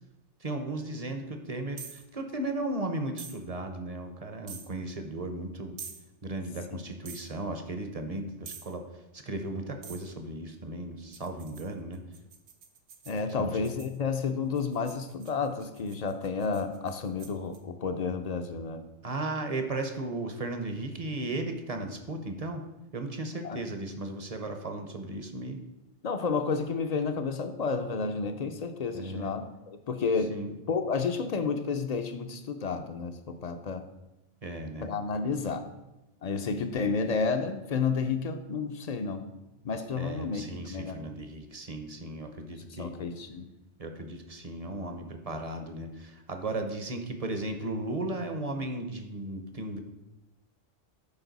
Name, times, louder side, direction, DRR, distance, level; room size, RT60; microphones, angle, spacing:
voice 1, 0.4-5.8 6.2-8.8 9.1-12.0 13.4-13.5 19.0-22.6 22.9-25.6 28.9-29.3 30.3-30.5 34.4-34.9 40.0-42.9 43.8-49.8, right 2 dB, 40° right, 5 dB, 0.7 m, -35 dB
sound 1, 1.8-2.1 3.2-3.4 4.5-4.7 5.8-6.0 7.1-7.3 8.5-8.7 9.8-10.1 11.1-14.0 14.5-17.6, right 6 dB, 85° right, 1.1 m, -46 dB
voice 2, 13.1-18.8 23.4-23.6 26.0-33.8 34.8-35.6 36.2-39.2 39.6-41.0 42.7-43.5, left 5 dB, 50° left, 7 dB, 0.5 m, -31 dB
11.0 x 4.4 x 4.0 m, 0.96 s
omnidirectional pair, 1.2 m